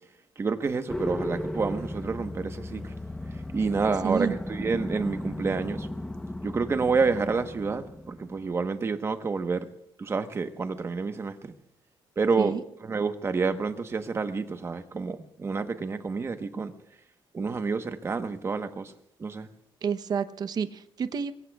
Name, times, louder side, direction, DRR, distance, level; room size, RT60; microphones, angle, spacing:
voice 1, 0.4-2.9 3.3-5.9 6.4-9.7 10.0-11.5 12.2-12.5 12.8-16.7 17.3-18.9 19.2-19.5, right 4 dB, 30° right, 1.1 m, -29 dB
sound 1, 0.9-8.6, left 1 dB, 5° left, 0.9 m, -36 dB
voice 2, 4.0-4.3 12.4-12.6 19.8-21.3, right 6 dB, 50° right, 0.8 m, -29 dB
26.0 x 22.5 x 2.4 m
cardioid pair, 145°, 9 cm